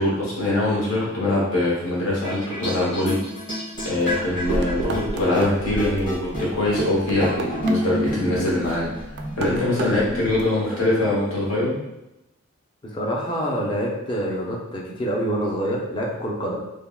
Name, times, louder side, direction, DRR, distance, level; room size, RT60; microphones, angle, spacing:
voice 1, 0.0-3.2 3.8-8.9 9.4-11.8, left 2 dB, 80° left, -6 dB, 0.9 m, -23 dB
sound 1, 2.2-11.7, right 1 dB, 40° left, 1.3 m, -30 dB
sound 2, 3.7-8.1 8.4-10.4, right 2 dB, 55° right, 0.3 m, -33 dB
voice 2, 12.9-16.6, equal, 25° left, -2 dB, 0.4 m, -26 dB
3.4 x 2.1 x 2.3 m, 0.91 s
head